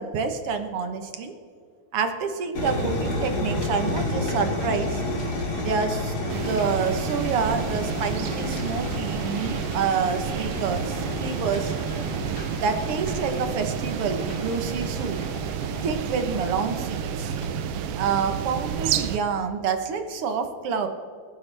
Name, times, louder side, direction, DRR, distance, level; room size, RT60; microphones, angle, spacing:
voice 1, 0.0-1.3 1.9-5.0 5.6-11.7 12.5-15.2 15.8-17.3 17.9-20.9, right 5 dB, 60° right, 7 dB, 1.8 m, -28 dB
sound 1, 2.5-17.5, left 1 dB, 35° left, 2.7 m, -31 dB
sound 2, 6.3-19.2, right 8 dB, 80° right, 1.3 m, -31 dB
25.0 x 10.0 x 3.4 m, 2.2 s
omnidirectional pair, 3.4 m